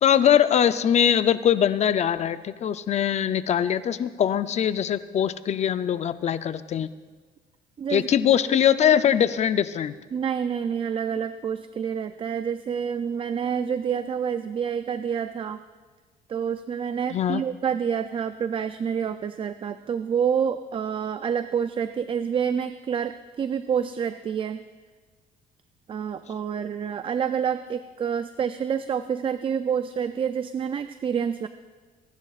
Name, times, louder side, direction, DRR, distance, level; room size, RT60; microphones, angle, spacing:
voice 1, 0.0-6.9 7.9-9.9 17.1-17.4, left 9 dB, 40° left, 13 dB, 0.5 m, -22 dB
voice 2, 7.8-8.1 10.1-15.6 16.3-24.6 25.9-31.5, right 7 dB, 30° right, 11 dB, 0.4 m, -28 dB
26.0 x 11.5 x 2.4 m, 1.4 s
cardioid pair, 110°, 17 cm